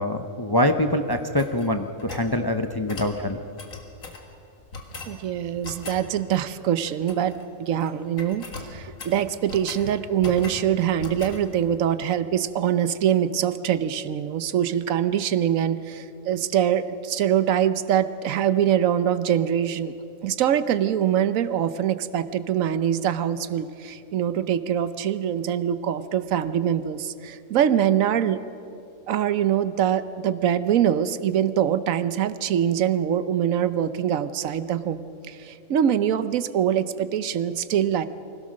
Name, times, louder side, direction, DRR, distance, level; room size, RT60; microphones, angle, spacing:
voice 1, 0.0-3.4, left 1 dB, 25° left, 6 dB, 0.6 m, -24 dB
sound 1, 1.1-2.3 2.9-3.2 3.6-4.2 4.7-5.2 5.6-6.0 6.8-7.4 7.7-7.9 8.2-9.9 10.2-10.7 11.0-11.4, left 3 dB, 80° left, 2.3 m, -39 dB
voice 2, 5.1-19.9 20.2-28.4 29.1-38.1, right 9 dB, 80° right, 13 dB, 1.1 m, -24 dB
24.5 x 16.5 x 6.3 m, 2.7 s
omnidirectional pair, 1.4 m